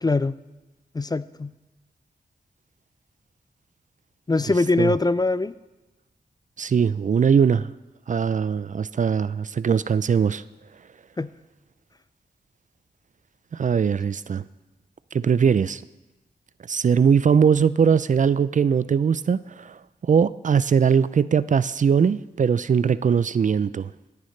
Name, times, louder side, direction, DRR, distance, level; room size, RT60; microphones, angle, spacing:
voice 1, 0.0-0.4 0.9-1.5 4.3-5.5 11.2-11.3, left 3 dB, 25° left, 16 dB, 0.4 m, -22 dB
voice 2, 6.6-7.7 8.1-10.4 13.5-14.4 15.1-15.8 16.7-23.9, right 6 dB, 50° right, 16 dB, 0.4 m, -21 dB
17.0 x 10.5 x 3.2 m, 1.1 s
cardioid pair, 45°, 17 cm